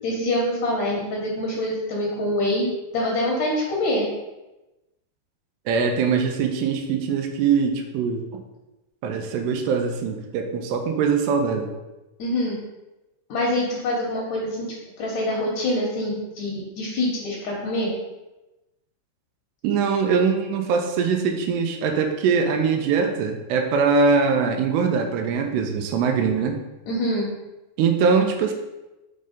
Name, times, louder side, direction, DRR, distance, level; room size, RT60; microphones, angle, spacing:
voice 1, 0.0-2.7 2.9-4.0 12.2-12.6 13.3-17.9 26.9-27.3, left 1 dB, 65° left, -3 dB, 2.0 m, -25 dB
voice 2, 5.7-8.4 9.0-11.7 19.6-26.6 27.8-28.5, right 5 dB, 90° right, 4 dB, 2.9 m, -22 dB
6.7 x 3.3 x 5.2 m, 1.0 s
omnidirectional pair, 4.7 m